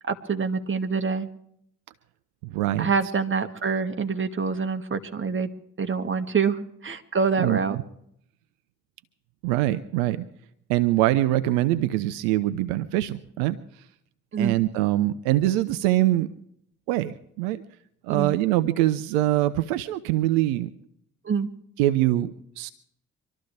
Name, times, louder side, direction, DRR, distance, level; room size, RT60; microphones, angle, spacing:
voice 1, 0.1-1.3 2.8-5.5 5.8-7.8 14.3-14.6 18.1-18.3 21.3-21.5, right 5 dB, 35° right, 6 dB, 1.8 m, -26 dB
voice 2, 2.4-2.9 7.4-7.8 9.4-10.2 10.7-13.6 14.4-16.3 16.9-17.6 18.0-20.7 21.8-22.7, right 15 dB, 80° right, 12 dB, 0.7 m, -23 dB
25.0 x 13.0 x 3.3 m, 0.70 s
hypercardioid pair, 45°, 36 cm